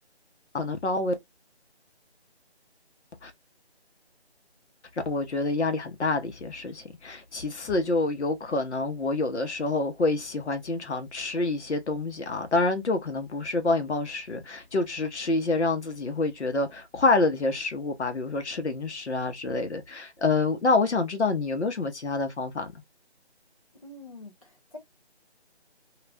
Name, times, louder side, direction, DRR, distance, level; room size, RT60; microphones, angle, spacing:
voice 1, 0.5-1.1 3.2-3.3 5.1-22.8, left 3 dB, 80° left, 0.8 m, -27 dB
voice 2, 23.8-24.8, left 2 dB, 30° left, 0.6 m, -45 dB
2.4 x 2.1 x 3.3 m
figure-of-eight pair, 170°, 33 cm